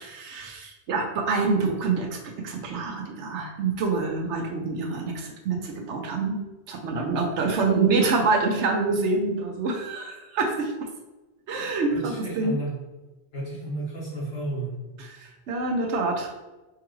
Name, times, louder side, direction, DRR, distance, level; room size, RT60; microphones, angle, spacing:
voice 1, 0.0-2.2 2.4-6.4 6.7-10.7 11.5-12.6 15.0-16.4, right 3 dB, 80° right, 2 dB, 1.0 m, -26 dB
voice 2, 11.9-12.8 13.3-14.8, right 2 dB, 60° left, -6 dB, 1.7 m, -32 dB
4.6 x 2.4 x 3.0 m, 1.1 s
omnidirectional pair, 1.2 m